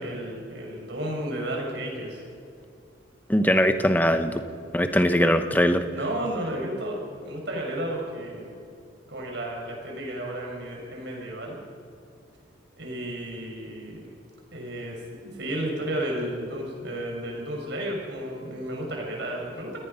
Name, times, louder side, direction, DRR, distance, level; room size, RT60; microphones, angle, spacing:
voice 1, 0.0-2.2 5.8-8.6 9.1-11.6 12.8-14.1 14.5-19.8, right 1 dB, 60° right, 0 dB, 6.0 m, -33 dB
voice 2, 3.3-4.4 4.7-5.8, equal, 10° left, 8 dB, 1.0 m, -21 dB
27.5 x 18.5 x 5.7 m, 2.4 s
head